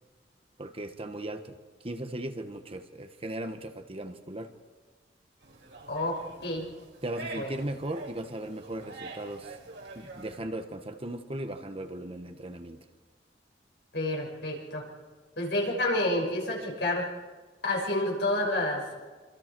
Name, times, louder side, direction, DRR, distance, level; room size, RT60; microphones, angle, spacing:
voice 1, 0.6-1.6 1.8-4.5 7.0-9.6 9.9-12.8, right 1 dB, 30° right, 7 dB, 1.2 m, -37 dB
sound 1, 5.4-10.4, right 2 dB, 75° right, 4.5 m, -45 dB
voice 2, 5.9-6.7 7.4-7.6 13.9-14.8 15.4-17.1 17.6-19.0, left 1 dB, 65° left, -1 dB, 6.1 m, -29 dB
26.5 x 26.0 x 4.6 m, 1.4 s
head